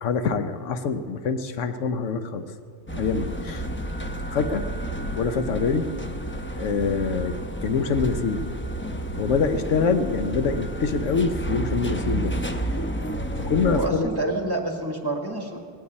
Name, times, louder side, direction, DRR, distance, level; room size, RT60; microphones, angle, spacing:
voice 1, 0.0-2.5 3.0-3.7 4.3-4.7 5.1-5.9 6.5-8.4 9.2-12.3 12.7-12.8 13.4-14.1, left 5 dB, 80° left, 10 dB, 1.1 m, -25 dB
sound 1, 2.9-13.9, right 1 dB, 15° left, 0.6 m, -30 dB
voice 2, 13.7-15.6, right 2 dB, 20° right, 2 dB, 1.6 m, -28 dB
19.0 x 17.5 x 4.2 m, 2.2 s
omnidirectional pair, 1.3 m